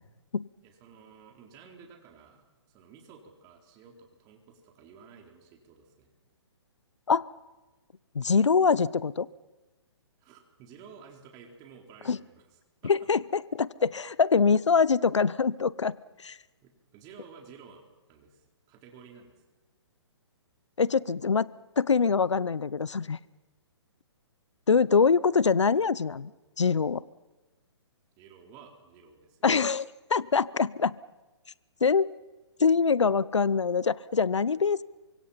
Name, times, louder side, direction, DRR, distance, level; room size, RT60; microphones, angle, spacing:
voice 1, 0.6-6.1 10.2-12.5 12.8-12.9 16.6-17.8 18.1-19.4 28.2-29.4, right 6 dB, 25° right, 2 dB, 4.3 m, -52 dB
voice 2, 8.1-9.3 12.1-12.2 12.8-16.0 16.2-16.4 20.8-23.2 24.7-26.3 26.6-27.0 29.4-31.0 31.8-32.1 32.6-34.8, left 5 dB, 90° left, 20 dB, 0.8 m, -24 dB
28.5 x 25.0 x 5.8 m, 1.1 s
hypercardioid pair, 140°, 15 cm